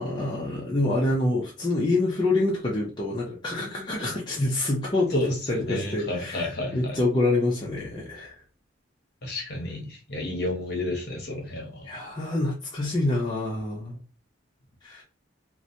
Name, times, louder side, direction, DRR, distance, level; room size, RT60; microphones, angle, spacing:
voice 1, 0.0-5.2 5.5-8.3 11.9-14.0 14.8-15.0, left 2 dB, 25° left, -5 dB, 0.4 m, -26 dB
voice 2, 5.1-7.0 9.2-11.9, left 2 dB, 55° left, 0 dB, 0.8 m, -31 dB
2.7 x 2.1 x 2.5 m, 0.36 s
head